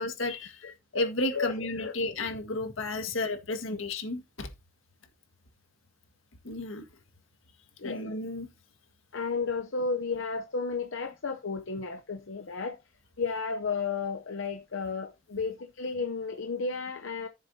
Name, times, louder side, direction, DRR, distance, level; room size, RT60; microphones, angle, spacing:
voice 1, 0.0-0.6 0.9-4.5 6.4-6.8 7.8-8.5, left 2 dB, 90° left, 1.8 m, -32 dB
voice 2, 1.3-2.0 7.8-8.0 9.1-12.8 13.2-17.3, left 4 dB, 75° left, 0.7 m, -33 dB
14.0 x 7.3 x 2.8 m
head